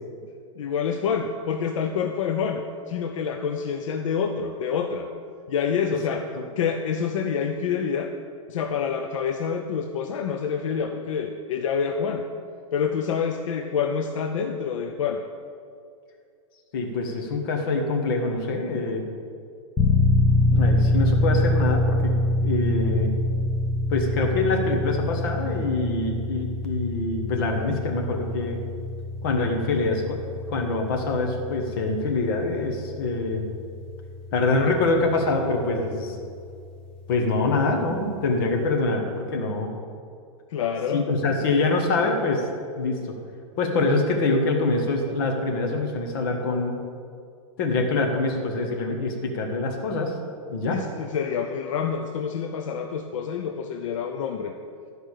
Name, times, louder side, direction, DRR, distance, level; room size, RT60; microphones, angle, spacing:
voice 1, 0.6-5.1 5.5-6.2 6.6-8.1 8.5-12.3 12.7-15.2 40.5-41.1 50.7-54.5, left 6 dB, 70° left, 4 dB, 0.7 m, -27 dB
voice 2, 6.1-6.5 16.7-19.0 20.5-22.1 22.4-23.1 23.9-28.6 29.2-30.2 30.5-33.5 34.3-36.2 37.1-39.7 40.9-42.5 42.8-43.2 43.6-46.8 47.6-50.2 50.5-50.8, left 3 dB, 40° left, 2 dB, 1.4 m, -25 dB
sound 1, 19.8-36.5, left 2 dB, 5° left, 0.5 m, -25 dB
12.0 x 5.1 x 6.5 m, 2.3 s
supercardioid pair, 170°, 17 cm